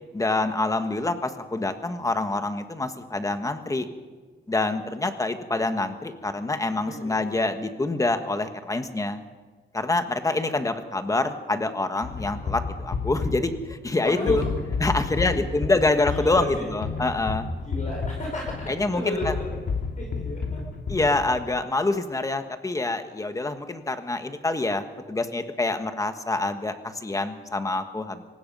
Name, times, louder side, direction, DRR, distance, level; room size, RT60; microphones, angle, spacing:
voice 1, 0.1-3.9 4.5-9.2 9.7-14.4 14.8-17.5 18.7-19.3 20.9-28.2, left 2 dB, 15° left, 8 dB, 1.5 m, -26 dB
voice 2, 6.8-7.2 14.0-14.5 15.1-15.4 16.1-16.7 17.6-19.6 20.0-20.6, left 1 dB, 40° left, -1 dB, 4.9 m, -32 dB
sound 1, 12.0-21.6, left 4 dB, 60° left, 2.8 m, -31 dB
24.5 x 19.5 x 5.5 m, 1.4 s
wide cardioid pair, 170°, 20 cm